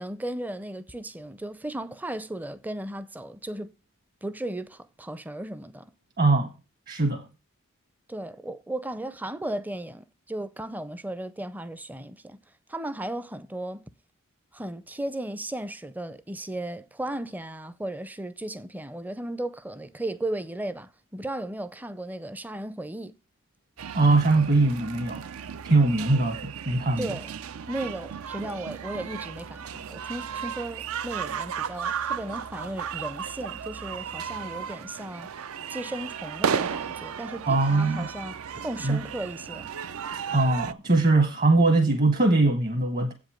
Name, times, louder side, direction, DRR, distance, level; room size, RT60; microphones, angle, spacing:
voice 1, 0.0-3.7 4.2-5.9 8.1-12.4 12.7-13.9 14.5-23.1 27.0-27.3 27.7-35.3 35.7-39.7, right 1 dB, 10° right, 0.5 m, -35 dB
voice 2, 6.2-6.5 6.9-7.3 23.9-25.2 25.7-27.1 37.5-38.1 38.8-39.0 40.3-43.1, right 2 dB, 45° right, 1.0 m, -21 dB
sound 1, 23.8-40.7, right 7 dB, 75° right, 0.5 m, -34 dB
8.0 x 5.2 x 7.6 m
head